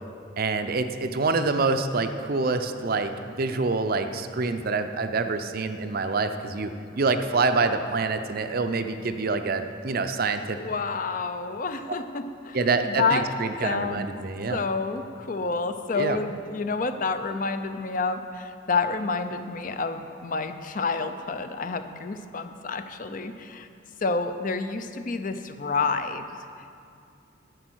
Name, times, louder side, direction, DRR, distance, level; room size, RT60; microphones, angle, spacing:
voice 1, 0.4-3.1 3.4-10.6 12.5-14.6 16.0-16.2, right 3 dB, 50° right, 8 dB, 0.5 m, -26 dB
voice 2, 10.5-12.6 12.8-13.3 13.6-14.0 14.5-23.7 24.0-26.2, left 4 dB, 45° left, 9 dB, 0.5 m, -29 dB
11.5 x 8.0 x 6.3 m, 2.5 s
head